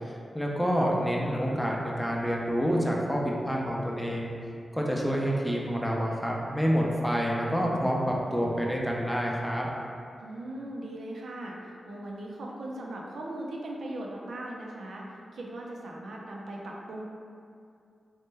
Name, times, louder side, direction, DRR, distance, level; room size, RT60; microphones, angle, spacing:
voice 1, 0.3-4.3 4.7-9.7, equal, 5° left, -2 dB, 0.4 m, -28 dB
voice 2, 10.2-15.0 15.3-17.0, right 1 dB, 85° right, -2 dB, 0.4 m, -39 dB
3.1 x 2.1 x 3.2 m, 2.4 s
wide cardioid pair, 90°, 0 cm